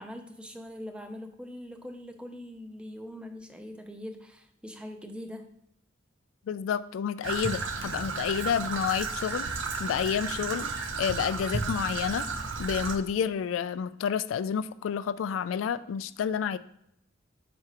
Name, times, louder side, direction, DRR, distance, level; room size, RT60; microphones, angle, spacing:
voice 1, 0.0-5.5, left 1 dB, 5° right, 6 dB, 0.5 m, -42 dB
voice 2, 6.5-9.5 9.8-10.7 11.0-12.2 12.6-16.6, left 7 dB, 80° left, 15 dB, 0.3 m, -29 dB
Traffic noise roadway noise / Trickle dribble, 7.2-13.0, right 4 dB, 70° right, 0.6 m, -33 dB
7.7 x 4.8 x 2.9 m, 0.74 s
head